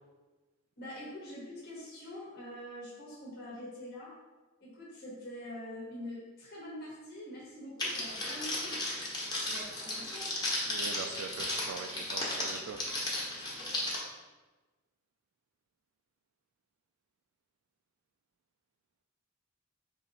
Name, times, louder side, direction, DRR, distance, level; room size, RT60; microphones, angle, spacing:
voice 1, 0.8-4.1 4.6-8.9 9.4-10.3, left 1 dB, 55° left, -6 dB, 1.2 m, -45 dB
Crackle, 7.8-14.0, left 1 dB, 20° left, 1.1 m, -35 dB
voice 2, 10.7-12.8, right 5 dB, 80° right, 5 dB, 0.3 m, -42 dB
4.5 x 2.9 x 4.0 m, 1.2 s
head